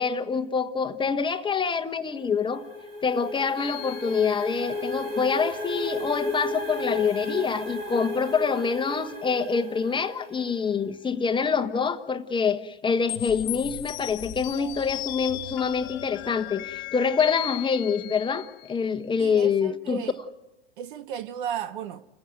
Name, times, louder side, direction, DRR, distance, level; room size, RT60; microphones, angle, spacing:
voice 1, 0.0-2.6 3.0-20.0, left 6 dB, 15° left, 1.3 m, -26 dB
sound 1, 2.0-10.7, left 1 dB, 80° right, 4.5 m, -34 dB
sound 2, 3.6-5.1 13.1-18.8, left 21 dB, 45° left, 0.7 m, -37 dB
voice 2, 19.2-20.2 20.8-22.1, right 9 dB, 60° right, 1.3 m, -34 dB
29.5 x 16.0 x 9.1 m
figure-of-eight pair, 95°, 29 cm